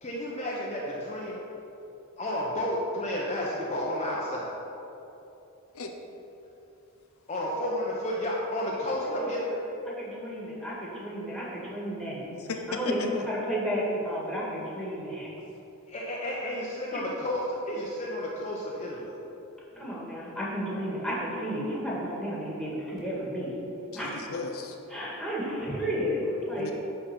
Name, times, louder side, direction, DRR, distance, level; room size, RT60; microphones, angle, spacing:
voice 1, 0.0-1.4 2.2-4.5 7.3-9.4 15.9-19.1, left 1 dB, 30° left, -5 dB, 0.9 m, -31 dB
voice 2, 9.9-12.2 12.8-15.3 16.9-17.0 19.7-23.5 23.9-24.1 24.9-26.7, equal, ahead, -6 dB, 2.0 m, -32 dB
voice 3, 12.4-13.3 23.9-24.7 26.6-26.7, left 3 dB, 75° left, 3 dB, 0.7 m, -35 dB
10.0 x 4.2 x 6.1 m, 3.0 s
head